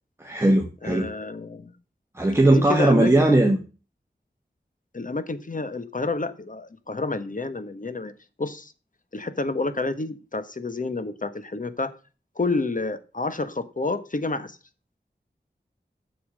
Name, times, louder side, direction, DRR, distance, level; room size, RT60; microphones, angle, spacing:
voice 1, 0.2-1.1 2.2-3.6, right 1 dB, 15° right, 2 dB, 1.7 m, -19 dB
voice 2, 0.8-1.7 2.4-3.5 4.9-8.1 8.4-8.7 9.1-11.9 12.3-14.6, left 3 dB, 50° left, 12 dB, 1.3 m, -29 dB
8.8 x 7.0 x 6.5 m, 0.34 s
wide cardioid pair, 50°, 18 cm